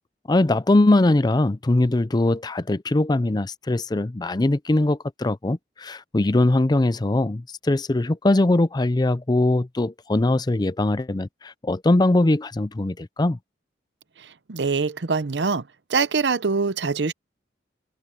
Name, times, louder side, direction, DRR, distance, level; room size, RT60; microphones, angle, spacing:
voice 1, 0.3-13.4, left 2 dB, 25° left, 0.5 m, -21 dB
voice 2, 14.2-15.6 15.9-17.1, right 4 dB, 75° right, 0.8 m, -24 dB
open air
head